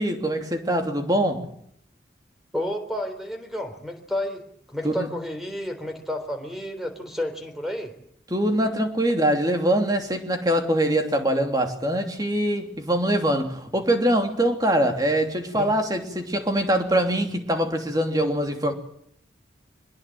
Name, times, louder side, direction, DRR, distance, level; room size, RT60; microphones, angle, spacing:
voice 1, 0.0-1.5 4.8-5.1 8.3-18.7, right 1 dB, 20° right, 3.0 m, -23 dB
voice 2, 2.5-4.4 4.7-7.9 15.5-15.7, left 1 dB, ahead, 3.8 m, -31 dB
24.0 x 21.0 x 7.8 m
head